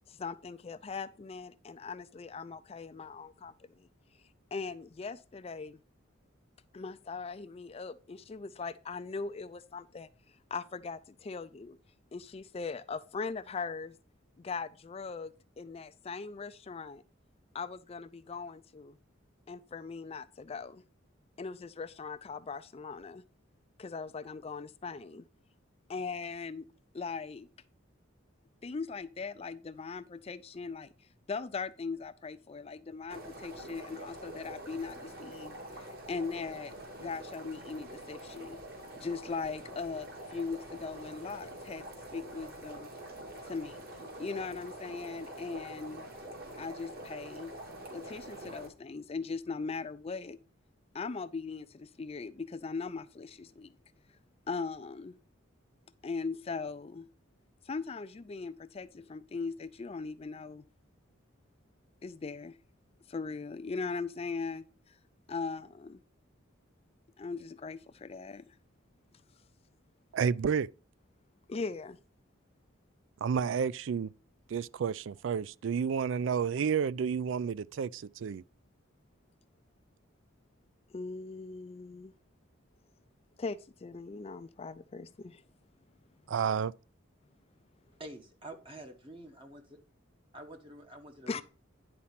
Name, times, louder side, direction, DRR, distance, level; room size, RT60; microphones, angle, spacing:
voice 1, 0.1-3.9 4.5-5.8 6.7-10.1 10.5-11.8 12.1-13.9 14.4-17.0 17.5-19.0 19.5-20.8 21.4-23.2 23.8-25.3 25.9-26.7 26.9-27.5 28.6-30.9 31.3-36.7 37.0-38.6 39.0-41.8 42.1-42.9 43.5-43.8 44.2-46.0 46.6-47.5 47.9-50.4 50.9-53.7 54.5-55.1 56.0-57.1 57.6-60.6 62.0-62.6 63.1-65.0 65.3-66.0 67.2-68.5 71.5-72.0 80.9-82.1 83.4-85.4 91.3-91.4, left 4 dB, 30° left, 0.4 m, -39 dB
sound 1, 33.1-48.7, right 1 dB, 50° right, 2.4 m, -46 dB
voice 2, 70.1-70.7 73.2-74.1 74.5-78.4 86.3-86.7, right 6 dB, 65° right, 0.3 m, -30 dB
voice 3, 88.0-89.6 90.3-91.4, right 1 dB, 25° right, 1.0 m, -47 dB
10.0 x 4.2 x 5.8 m
head